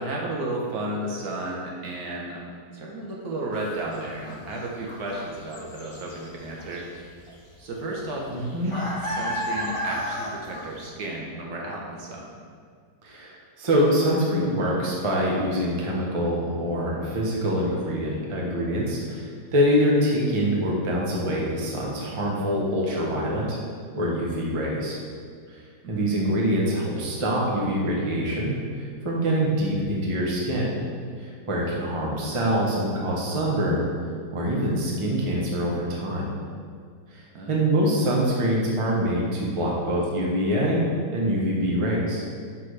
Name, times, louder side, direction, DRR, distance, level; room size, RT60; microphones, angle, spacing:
voice 1, 0.0-6.8 7.6-8.3 8.6-12.2 25.8-26.1 37.3-37.9, right 1 dB, 65° right, -2 dB, 1.3 m, -33 dB
sound 1, 3.5-3.6 3.9-6.3 6.6-7.0 7.3-7.4 7.8-10.8, equal, 45° left, 0.4 m, -32 dB
voice 2, 8.3-8.8 13.0-23.6 23.9-25.0 25.9-30.8 31.2-33.9 34.3-36.3 37.5-40.8 41.1-42.2, equal, 25° right, -4 dB, 0.8 m, -25 dB
6.1 x 5.8 x 3.2 m, 2.1 s
omnidirectional pair, 1.8 m